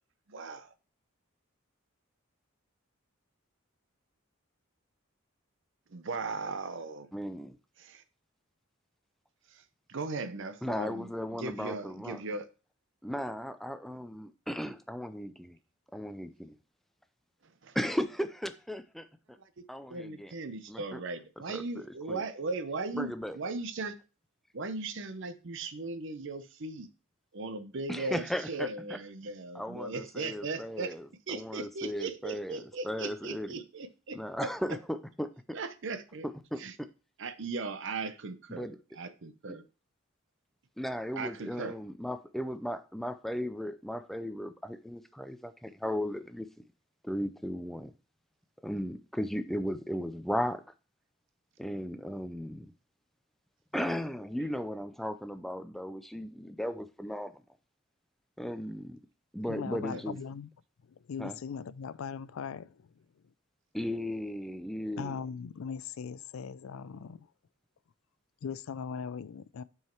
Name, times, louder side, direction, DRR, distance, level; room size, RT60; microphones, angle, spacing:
voice 1, 0.3-0.7 5.9-7.1 7.8-8.0 9.5-9.6 9.9-12.5 17.4-17.7 19.4-19.6 19.9-24.0 24.5-26.9 27.3-31.0 31.3-34.8 35.5-36.3 36.5-36.8 37.2-39.6 41.1-41.7 59.9-60.2, right 3 dB, 60° right, 0.7 m, -38 dB
voice 2, 7.1-7.6 10.6-12.2 13.0-15.6 15.9-16.5 17.7-19.1 19.7-20.3 20.7-21.0 21.5-22.2 23.0-23.4 27.9-28.7 29.5-33.6 34.1-35.6 36.2-36.9 38.5-38.8 39.5-39.6 40.8-46.5 47.0-47.9 48.6-50.6 51.6-52.7 53.7-57.4 58.4-59.0 59.3-60.2 61.2-61.4 63.7-65.2, equal, ahead, 0.4 m, -36 dB
voice 3, 59.5-60.5 61.1-62.9 65.0-67.3 68.4-69.6, left 6 dB, 75° left, 0.4 m, -39 dB
6.2 x 4.7 x 4.4 m
head